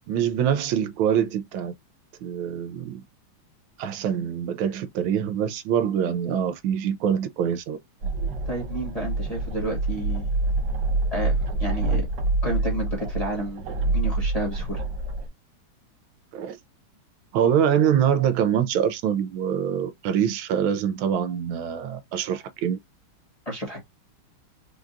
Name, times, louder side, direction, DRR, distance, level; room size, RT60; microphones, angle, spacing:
voice 1, 0.1-1.7 2.2-3.0 3.8-7.8 16.3-16.6 17.3-22.8, right 9 dB, 80° right, 1.4 m, -24 dB
sound 1, 8.0-15.3, right 2 dB, 65° right, 1.4 m, -26 dB
voice 2, 8.5-10.3 11.1-12.1 12.4-13.6 13.9-14.8 23.4-23.8, right 1 dB, 20° left, 1.1 m, -30 dB
4.8 x 2.3 x 2.6 m
omnidirectional pair, 2.3 m